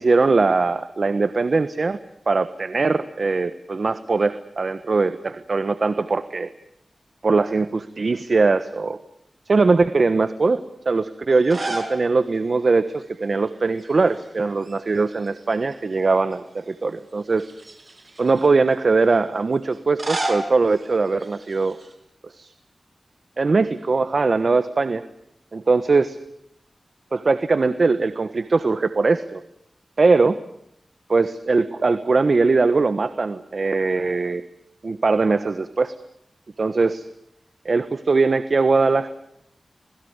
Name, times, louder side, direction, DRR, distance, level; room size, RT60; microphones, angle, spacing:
voice 1, 0.0-2.0 2.3-6.5 7.2-9.0 9.5-17.5 18.2-21.8 22.4-22.5 23.4-25.0 25.5-26.2 27.1-29.4 30.0-30.4 31.1-34.4 34.8-35.9 36.6-37.0 37.6-39.1, right 3 dB, 60° right, 12 dB, 1.3 m, -21 dB
sound 1, 11.3-12.0 12.3-12.4 13.8-14.3 14.6-15.7 16.3-16.4 17.3-18.5 19.7-21.9, right 2 dB, 45° right, 6.6 m, -32 dB
27.5 x 20.5 x 8.1 m, 0.74 s
cardioid pair, 55°, 0 cm